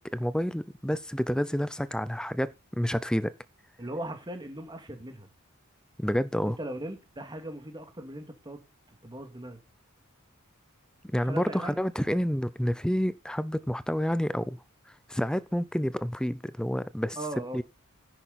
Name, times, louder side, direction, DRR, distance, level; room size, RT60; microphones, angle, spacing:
voice 1, 0.0-3.3 6.0-6.6 11.0-14.6 15.1-17.2 17.5-17.6, equal, 5° left, 0.5 m, -29 dB
voice 2, 3.8-5.3 6.6-8.6 9.0-9.6 11.2-12.1 17.2-17.6, right 1 dB, 20° right, 2.2 m, -39 dB
10.5 x 9.0 x 4.2 m
head